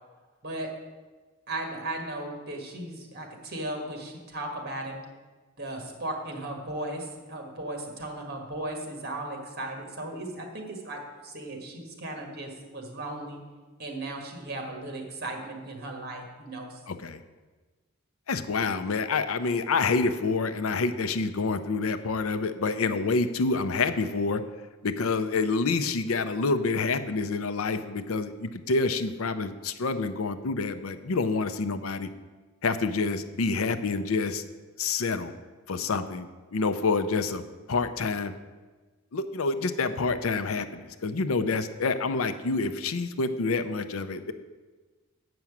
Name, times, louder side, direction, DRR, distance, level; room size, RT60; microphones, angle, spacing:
voice 1, 1.5-5.0 5.6-13.4 13.8-16.8, right 1 dB, 45° right, 2 dB, 1.6 m, -36 dB
voice 2, 16.9-17.2 18.3-24.4 24.8-32.1 32.6-34.4 34.8-35.3 35.7-37.4 37.7-38.3 39.1-44.3, left 4 dB, 75° left, 11 dB, 0.6 m, -27 dB
7.8 x 5.9 x 7.2 m, 1.3 s
head